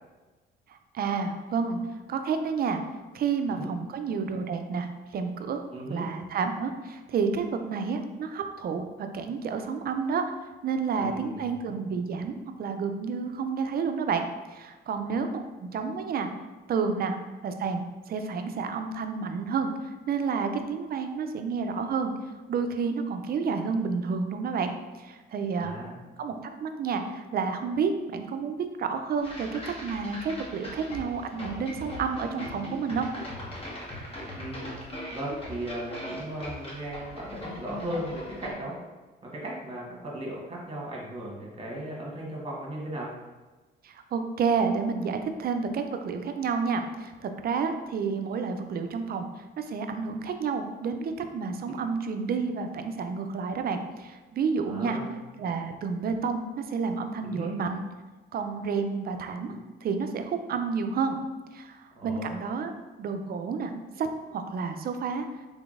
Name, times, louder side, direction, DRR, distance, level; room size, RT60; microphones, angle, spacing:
voice 1, 0.7-1.8 2.1-2.8 3.1-5.6 5.9-10.2 10.6-14.2 14.5-16.3 16.7-17.2 17.4-17.8 18.1-19.7 20.1-22.1 22.5-24.7 25.0-25.7 26.2-26.3 26.6-33.1 43.8-49.3 49.6-55.0 55.4-57.8 58.3-59.5 59.8-61.2 61.5-62.7 63.0-63.7 64.0-65.3, right 5 dB, 50° right, 7 dB, 0.4 m, -30 dB
voice 2, 5.7-6.1 11.0-11.6 15.1-15.2 25.6-25.9 34.3-34.8 35.1-38.7 39.2-43.1 54.6-55.1 57.2-57.5 59.4-59.6 61.9-62.3, right 1 dB, 30° right, -3 dB, 1.2 m, -37 dB
sound 1, 29.2-38.5, left 1 dB, 30° left, 1.0 m, -40 dB
3.7 x 3.4 x 2.5 m, 1.2 s
cardioid pair, 90°, 20 cm